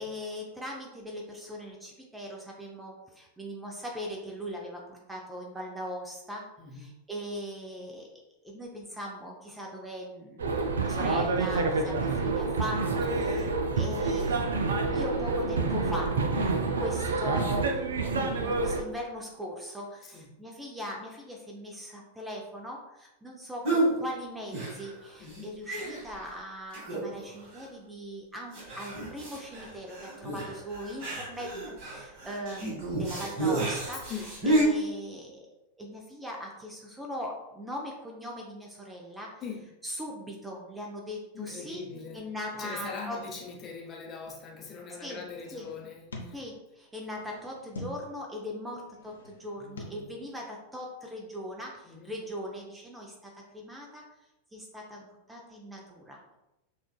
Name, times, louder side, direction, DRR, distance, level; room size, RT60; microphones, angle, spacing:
voice 1, 0.0-6.4 6.7-8.1 8.4-12.8 13.1-13.5 13.8-14.4 14.9-16.1 16.8-31.5 31.8-35.5 35.8-39.4 39.8-41.8 42.1-43.2 45.0-45.2 45.5-45.7 46.3-54.0 54.5-56.2, equal, 10° right, -1 dB, 0.6 m, -40 dB
voice 2, 6.6-6.9 13.1-13.3 20.0-20.3 25.2-25.5 34.1-34.3 39.4-39.6 41.3-46.4 49.6-50.2 51.8-52.2, left 5 dB, 25° left, -1 dB, 0.7 m, -42 dB
sound 1, 10.4-18.8, right 3 dB, 65° right, 0.4 m, -28 dB
sound 2, 23.6-23.9 24.5-25.1 25.3-25.4 25.7-26.2 26.7-27.2 27.5-27.6 28.5-34.6, right 2 dB, 45° right, 1.4 m, -31 dB
sound 3, 41.9-42.1 42.9-44.4 45.1-46.5 46.9-48.2 48.7-49.8, left 1 dB, 70° left, 0.6 m, -47 dB
6.0 x 2.5 x 2.2 m, 0.94 s
figure-of-eight pair, 90°, 0 cm